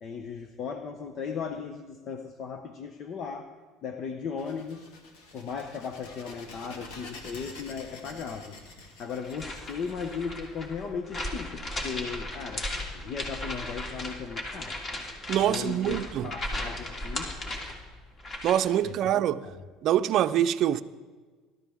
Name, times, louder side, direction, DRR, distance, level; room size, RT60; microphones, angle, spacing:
voice 1, 0.0-3.5 3.8-4.9 5.3-8.6 9.0-12.7 12.9-14.8 15.4-17.3 18.8-19.5, left 6 dB, 50° left, 1.0 m, -37 dB
sound 1, 4.4-10.9, left 3 dB, 85° left, 2.7 m, -47 dB
sound 2, 9.2-18.7, left 1 dB, 35° left, 2.8 m, -36 dB
voice 2, 15.3-16.3 18.4-19.4 19.8-20.8, right 11 dB, 55° right, 0.6 m, -25 dB
20.0 x 12.5 x 3.6 m
supercardioid pair, 110°, 0 cm